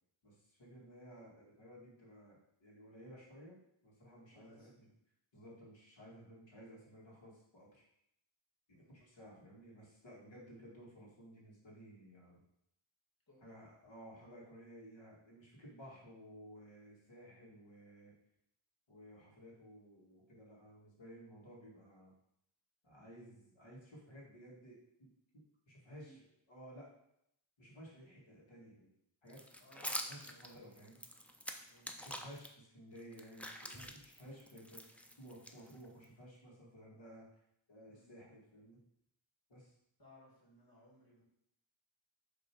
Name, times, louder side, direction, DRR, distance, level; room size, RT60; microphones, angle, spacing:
voice 1, 0.2-3.6 3.8-4.9 5.3-7.8 8.9-12.4 13.4-18.1 18.9-22.1 22.8-26.2 26.5-26.9 27.6-28.9 29.2-29.4 30.1-31.0 32.0-37.3 37.7-38.8 39.5-39.7, equal, 60° left, -4 dB, 2.3 m, -55 dB
voice 2, 4.3-4.8 8.7-9.0 13.3-13.5 25.8-26.2 29.6-30.5 31.6-32.2 37.9-38.1 40.0-41.2, equal, 45° left, -4 dB, 2.6 m, -63 dB
sound 1, 29.3-32.5 33.0-36.0, equal, 5° left, 0.4 m, -46 dB
6.8 x 3.7 x 4.6 m, 0.77 s
wide cardioid pair, 135°, 50 cm